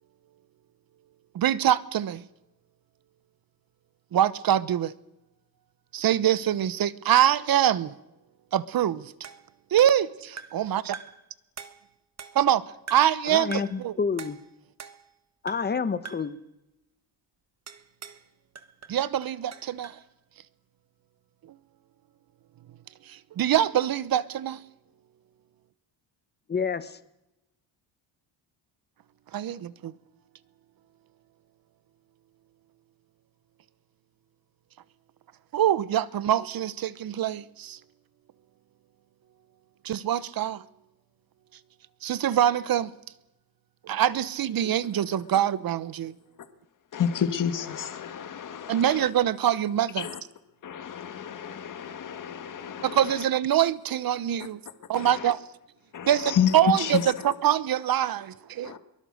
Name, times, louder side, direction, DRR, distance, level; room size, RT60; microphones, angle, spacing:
voice 1, 1.3-2.3 4.1-4.9 5.9-7.9 8.5-9.1 9.7-11.0 12.3-12.6 12.9-14.0 18.9-20.0 23.1-24.6 29.3-29.9 35.5-37.8 39.8-40.6 42.0-42.9 43.8-46.2 48.7-50.1 52.8-54.6 54.9-55.4 56.1-58.8, right 11 dB, 50° right, 1.0 m, -24 dB
sound 1, 9.2-10.7 10.9-11.3 11.6-12.5 12.9-13.2 13.5-13.8 14.2-15.2 15.5-15.8 16.1-16.4 17.7-18.3 18.6-20.0, right 6 dB, 35° right, 1.3 m, -44 dB
voice 2, 13.3-14.4 15.4-16.4 26.5-27.0, left 5 dB, 20° left, 1.1 m, -28 dB
voice 3, 46.9-49.1 50.0-50.2 50.6-53.1 54.9-55.3 55.9-57.3 58.6-58.8, left 8 dB, 45° left, 1.7 m, -30 dB
22.5 x 21.5 x 6.5 m
cardioid pair, 145°, 44 cm